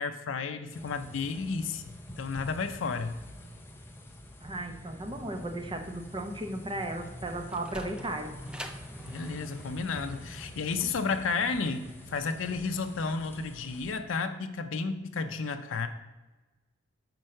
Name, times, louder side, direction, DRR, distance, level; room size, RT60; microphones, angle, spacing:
voice 1, 0.0-1.8 2.2-3.1 9.1-15.9, left 4 dB, 80° left, 7 dB, 0.5 m, -32 dB
sound 1, 0.7-13.9, equal, 10° left, 0.8 m, -46 dB
voice 2, 4.4-8.3, right 1 dB, 25° right, 5 dB, 0.8 m, -35 dB
Sliding door, 7.5-12.4, equal, 5° right, 0.4 m, -47 dB
5.9 x 4.5 x 6.4 m, 1.1 s
head